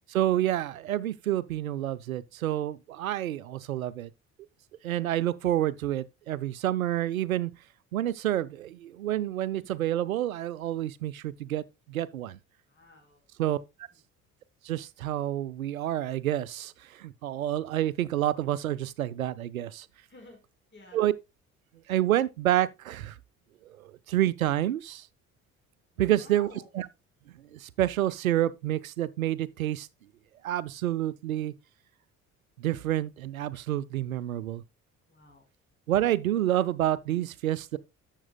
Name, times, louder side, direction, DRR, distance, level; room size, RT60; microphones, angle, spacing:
voice 1, 0.1-4.1 4.8-7.5 7.9-12.4 13.4-13.6 14.6-19.9 20.9-21.1 21.9-23.2 23.6-25.1 26.0-26.5 26.7-26.9 27.5-29.9 30.4-31.5 32.6-34.6 35.9-37.8, right 13 dB, 80° right, 0.6 m, -28 dB
voice 2, 12.7-13.2 20.1-20.4 20.7-21.0 26.1-26.7 35.1-35.4, left 2 dB, 25° left, 4.5 m, -51 dB
12.0 x 7.3 x 2.2 m
figure-of-eight pair, 50°, 41 cm